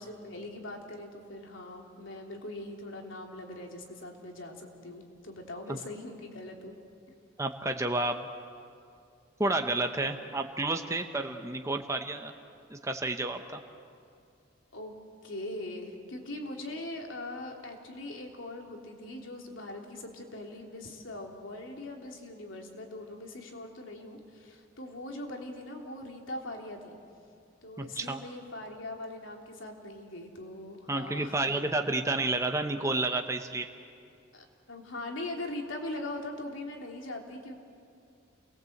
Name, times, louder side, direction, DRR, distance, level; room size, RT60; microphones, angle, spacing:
voice 1, 0.0-6.7 14.7-14.9 15.2-27.0 27.6-31.4 34.3-37.6, left 1 dB, 80° left, 1 dB, 3.2 m, -41 dB
voice 2, 7.4-8.3 9.4-12.3 12.7-13.6 27.8-28.2 30.9-33.7, right 2 dB, 15° right, 5 dB, 1.1 m, -30 dB
29.0 x 21.0 x 8.0 m, 2.4 s
head